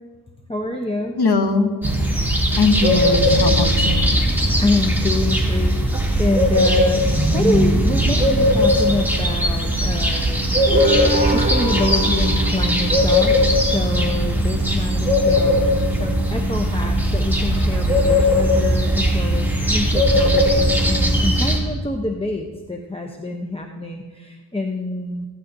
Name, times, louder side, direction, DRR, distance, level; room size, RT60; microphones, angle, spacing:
voice 1, 0.5-1.1 4.6-5.7 6.2-10.6 11.3-15.6 15.9-25.3, left 2 dB, 15° left, 2 dB, 0.7 m, -26 dB
sound 1, 0.6-1.6 2.9-5.5 7.0-10.1 10.7-13.2, right 2 dB, 25° right, 1.9 m, -26 dB
voice 2, 1.2-1.7 2.6-4.2, left 3 dB, 75° left, 6 dB, 1.1 m, -20 dB
sound 2, 1.8-21.6, equal, 5° right, 2.5 m, -19 dB
16.0 x 11.5 x 2.6 m, 1.4 s
wide cardioid pair, 60°, 39 cm